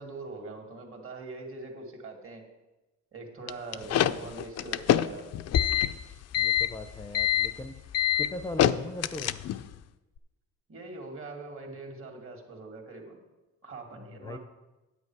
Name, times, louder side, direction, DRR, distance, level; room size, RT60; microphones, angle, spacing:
voice 1, 0.0-2.4 3.1-5.3 10.7-13.2 13.6-14.4, right 3 dB, 45° right, 2 dB, 2.3 m, -42 dB
sound 1, 3.5-9.7, left 11 dB, 55° left, 0.5 m, -26 dB
voice 2, 6.4-7.8 8.2-9.4 14.0-14.4, left 1 dB, 10° left, 7 dB, 0.6 m, -39 dB
9.8 x 8.2 x 4.7 m, 1.1 s
cardioid pair, 90°, 30 cm